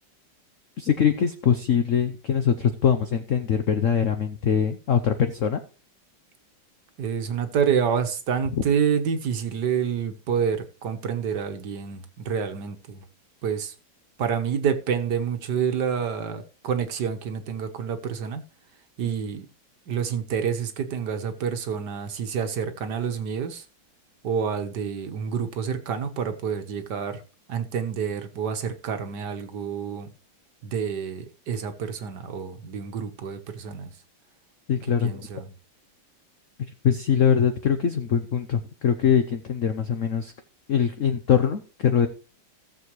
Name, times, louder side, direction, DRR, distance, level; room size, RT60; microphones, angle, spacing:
voice 1, 0.8-5.6 8.6-8.7 34.7-35.3 36.8-40.3 40.7-42.1, left 7 dB, 55° left, 0.9 m, -22 dB
voice 2, 7.0-13.0 13.4-13.7 14.2-18.4 19.0-19.5 19.9-23.6 24.2-27.2 27.5-30.1 30.6-33.9 35.0-35.5, right 7 dB, 60° right, 1.7 m, -28 dB
17.0 x 7.1 x 3.1 m
omnidirectional pair, 2.1 m